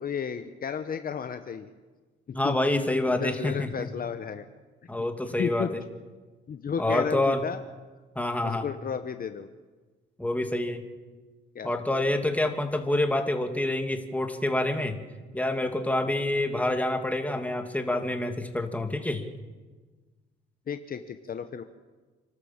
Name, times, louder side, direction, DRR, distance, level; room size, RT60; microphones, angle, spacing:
voice 1, 0.0-1.7 2.3-2.6 3.2-4.5 5.0-5.1 5.4-5.7 6.5-7.6 8.4-9.5 11.5-11.7 20.7-21.6, left 7 dB, 45° left, 9 dB, 1.1 m, -33 dB
voice 2, 2.3-3.9 4.9-5.8 6.8-7.4 8.1-8.7 10.2-10.8 11.6-15.0 15.3-19.3, left 1 dB, 5° left, 5 dB, 2.4 m, -27 dB
28.0 x 13.0 x 7.3 m, 1.3 s
cardioid pair, 90°, 20 cm